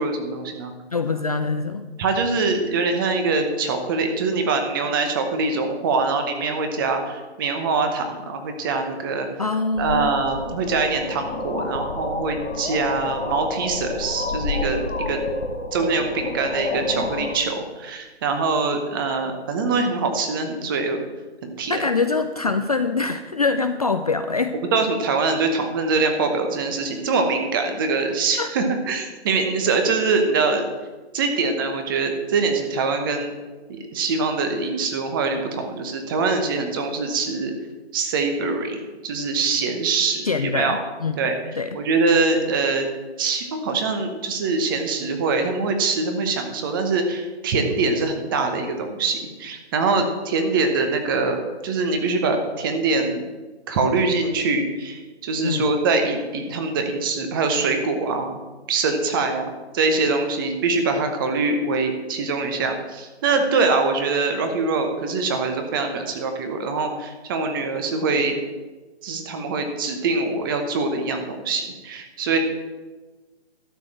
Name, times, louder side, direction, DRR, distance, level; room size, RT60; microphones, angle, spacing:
voice 1, 0.0-0.7 2.0-9.3 9.8-14.8 15.1-15.2 15.7-21.0 21.4-21.8 24.7-30.6 31.1-33.3 33.7-37.5 37.9-40.8 41.2-41.3 41.7-42.9 43.2-53.2 53.7-58.3 58.7-59.5 59.7-68.3 69.0-72.4, right 4 dB, 20° right, 6 dB, 0.9 m, -23 dB
voice 2, 0.9-1.9 9.4-10.1 21.7-24.5 28.4-28.5 40.2-41.3 41.6-41.8 55.4-55.7, left 4 dB, 35° left, 8 dB, 0.4 m, -24 dB
sound 1, 9.8-17.4, left 3 dB, 85° left, 1.4 m, -29 dB
12.5 x 5.0 x 7.3 m, 1.2 s
hypercardioid pair, 155°, 34 cm